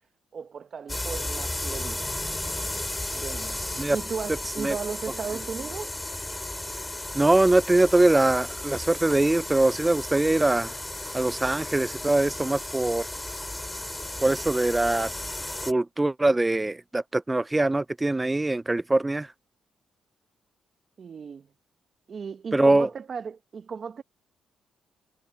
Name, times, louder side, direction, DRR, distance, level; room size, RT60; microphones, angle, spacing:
voice 1, 0.3-2.3 3.1-5.9 21.0-21.5 22.1-24.0, right 6 dB, 50° right, 1.2 m, -36 dB
sound 1, 0.9-15.7, left 1 dB, 15° left, 3.1 m, -34 dB
voice 2, 7.1-10.8 11.1-13.1 14.2-15.1 15.6-19.3 22.5-22.9, right 2 dB, 15° right, 0.3 m, -22 dB
cardioid pair, 85°, 0 cm